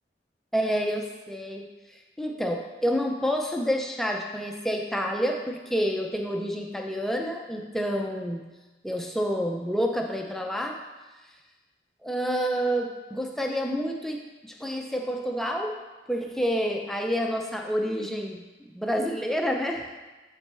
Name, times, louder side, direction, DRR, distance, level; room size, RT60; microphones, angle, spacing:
voice 1, 0.5-1.7 2.2-8.5 8.8-10.8 12.0-15.8 16.1-18.4 18.7-20.0, equal, ahead, 1 dB, 0.5 m, -28 dB
10.5 x 4.1 x 3.4 m, 1.2 s
head